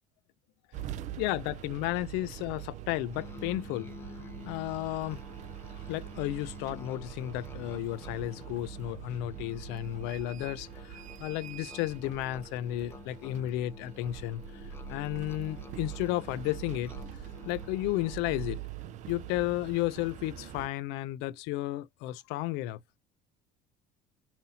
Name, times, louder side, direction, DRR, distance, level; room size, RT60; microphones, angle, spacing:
sound 1, 0.7-20.7, right 11 dB, 45° right, 0.5 m, -44 dB
voice 1, 1.2-3.9 4.4-5.2 5.7-18.6 19.1-22.8, left 15 dB, 75° left, 0.4 m, -33 dB
Musical instrument, 3.1-18.7, left 5 dB, 15° left, 0.6 m, -50 dB
5.6 x 2.7 x 2.7 m
cardioid pair, 155°, 18 cm